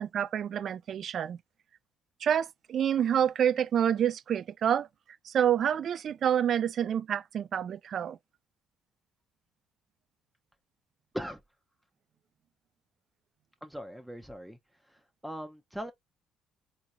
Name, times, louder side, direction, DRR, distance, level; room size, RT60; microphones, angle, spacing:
voice 1, 0.0-1.4 2.2-4.9 5.2-8.2, right 9 dB, 55° right, 0.4 m, -28 dB
voice 2, 13.6-14.6 14.9-15.9, equal, 5° right, 0.6 m, -40 dB
3.8 x 3.0 x 2.5 m
supercardioid pair, 70°, 0 cm